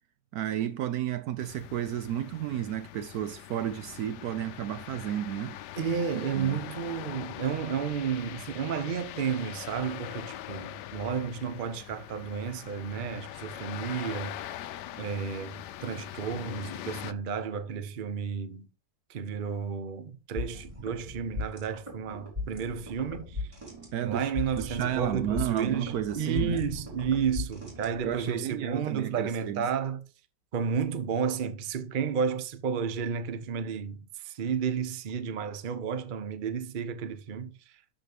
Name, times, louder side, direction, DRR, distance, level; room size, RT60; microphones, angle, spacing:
voice 1, 0.3-5.6 6.1-6.6 23.9-26.6 28.0-29.7, right 11 dB, 70° right, 0.9 m, -32 dB
sound 1, 1.4-17.1, left 13 dB, 75° left, 1.1 m, -42 dB
voice 2, 5.8-14.4 15.0-18.7 19.1-23.5 24.0-30.0 30.5-37.5, right 6 dB, 50° right, 0.6 m, -32 dB
sound 2, 20.4-28.3, left 3 dB, 15° right, 3.8 m, -38 dB
12.5 x 4.2 x 3.4 m
omnidirectional pair, 1.9 m